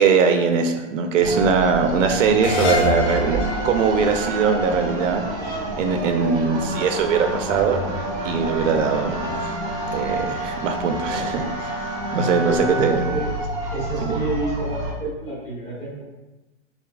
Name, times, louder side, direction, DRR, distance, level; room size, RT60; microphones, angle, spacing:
voice 1, 0.0-3.4 3.6-5.2 5.8-7.8 8.2-9.6 9.9-11.8 12.1-13.0 14.0-14.2, right 5 dB, 85° right, 6 dB, 0.5 m, -21 dB
sound 1, 1.2-14.9, right 1 dB, 30° right, 0.4 m, -28 dB
sound 2, 2.4-5.7, left 2 dB, 70° left, 0.7 m, -26 dB
voice 2, 12.1-13.3 13.7-16.0, right 1 dB, 20° left, -7 dB, 0.8 m, -29 dB
2.8 x 2.4 x 2.2 m, 1.1 s
hypercardioid pair, 150°, 37 cm